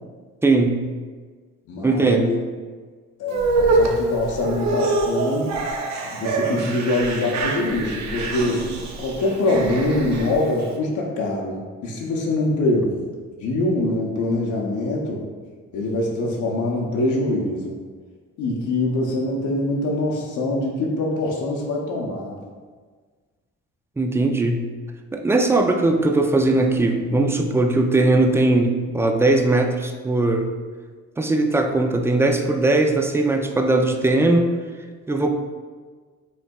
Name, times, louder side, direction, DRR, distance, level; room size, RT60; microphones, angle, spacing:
voice 1, 0.4-0.8 1.8-2.3 24.0-24.7 25.1-30.5 31.2-34.5 35.1-35.3, right 2 dB, 10° right, 4 dB, 0.3 m, -19 dB
voice 2, 1.7-2.4 3.2-5.5 6.0-8.6 9.0-13.0 13.4-15.2 15.7-17.7 18.4-22.4, left 2 dB, 75° left, -2 dB, 0.8 m, -24 dB
sound 1, 3.3-10.7, right 3 dB, 65° right, 0.6 m, -25 dB
5.3 x 3.3 x 2.3 m, 1.5 s
cardioid pair, 90°, 30 cm